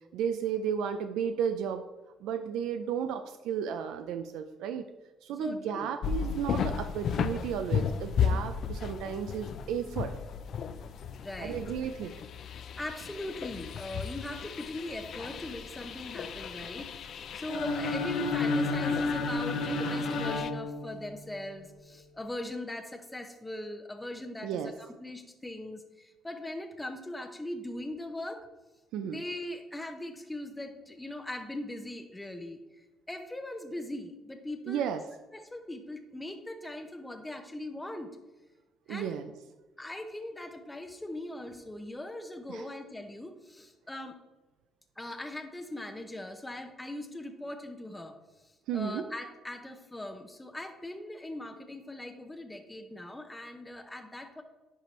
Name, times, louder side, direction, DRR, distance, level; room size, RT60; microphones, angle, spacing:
voice 1, 0.1-1.8 2.2-4.9 5.2-10.1 11.4-12.1 24.4-24.7 28.9-29.2 34.7-35.0 38.9-39.3 42.5-42.6 48.7-49.1, right 8 dB, 80° right, 8 dB, 0.4 m, -33 dB
voice 2, 5.4-5.9 11.2-11.6 12.8-28.4 29.0-34.8 35.3-38.1 38.9-39.1 39.8-44.2 45.0-54.4, left 1 dB, 10° left, 5 dB, 0.5 m, -40 dB
sound 1, 6.0-20.5, left 7 dB, 55° left, 0.4 m, -35 dB
sound 2, 17.5-21.4, left 3 dB, 85° left, 1.2 m, -31 dB
10.0 x 4.4 x 3.1 m, 1.1 s
cardioid pair, 115°, 0 cm